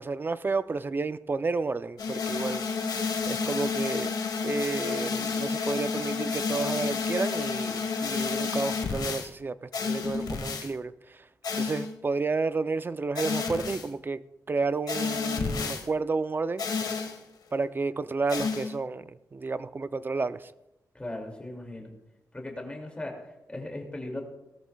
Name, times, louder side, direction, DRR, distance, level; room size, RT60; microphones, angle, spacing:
voice 1, 0.0-2.6 3.3-4.1 4.4-11.3 11.5-16.7 17.5-20.5, right 4 dB, 30° right, 0.5 m, -31 dB
sound 1, 2.0-9.3 9.7-10.7 11.4-12.0 13.1-13.9 14.9-15.8 16.6-17.2 18.3-18.8, left 5 dB, 80° left, 1.4 m, -30 dB
voice 2, 20.9-21.9 22.3-24.2, left 1 dB, 15° left, 2.4 m, -38 dB
18.5 x 13.5 x 2.3 m
wide cardioid pair, 110°, 7 cm